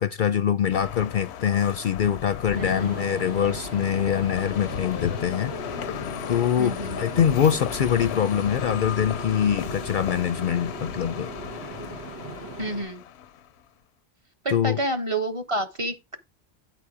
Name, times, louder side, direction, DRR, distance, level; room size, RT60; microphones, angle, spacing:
voice 1, 0.0-5.6 6.3-11.3 14.5-14.8, left 9 dB, 60° left, 0.6 m, -24 dB
sound 1, 0.7-13.6, left 9 dB, 90° left, 0.9 m, -36 dB
sound 2, 2.5-12.8, right 1 dB, 85° right, 2.2 m, -38 dB
voice 2, 6.6-7.0 12.6-13.0 14.4-16.2, right 1 dB, 30° right, 1.0 m, -29 dB
9.1 x 4.2 x 4.8 m
omnidirectional pair, 1.1 m